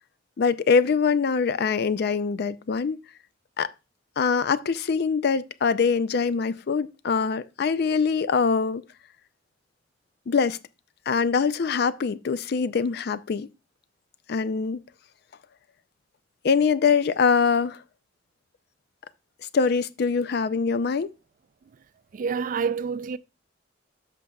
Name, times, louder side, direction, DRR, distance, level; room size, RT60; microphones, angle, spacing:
voice 1, 0.4-3.0 3.6-3.7 4.2-8.8 10.3-10.6 11.1-13.5 14.3-14.8 16.4-17.8 19.5-21.1, left 5 dB, 55° left, 0.4 m, -23 dB
voice 2, 22.1-23.2, right 6 dB, 45° right, 0.3 m, -27 dB
13.0 x 5.3 x 2.3 m
head